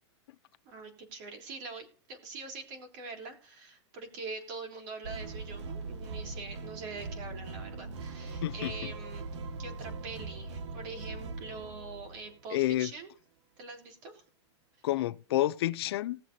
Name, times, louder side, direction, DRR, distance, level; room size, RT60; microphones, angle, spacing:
voice 1, 0.7-9.3 9.6-13.1 13.6-14.2, right 4 dB, 40° right, 3.7 m, -44 dB
sound 1, 5.0-12.4, right 3 dB, 80° right, 1.5 m, -41 dB
voice 2, 8.4-8.7 12.5-12.9 14.8-16.2, left 15 dB, 60° left, 0.6 m, -29 dB
19.0 x 7.3 x 2.8 m
supercardioid pair, 170°, 15 cm